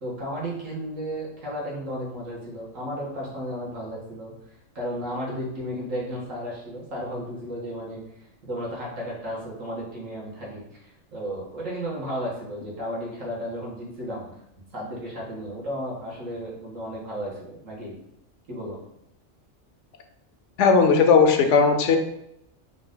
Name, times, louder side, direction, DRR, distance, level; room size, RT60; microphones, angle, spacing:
voice 1, 0.0-4.3 4.8-8.0 8.4-10.8 11.1-14.3 14.7-17.9 18.5-18.8, equal, 85° right, -4 dB, 1.8 m, -33 dB
voice 2, 20.6-22.0, left 5 dB, 75° left, 5 dB, 0.9 m, -17 dB
4.7 x 2.5 x 3.7 m, 0.80 s
omnidirectional pair, 1.3 m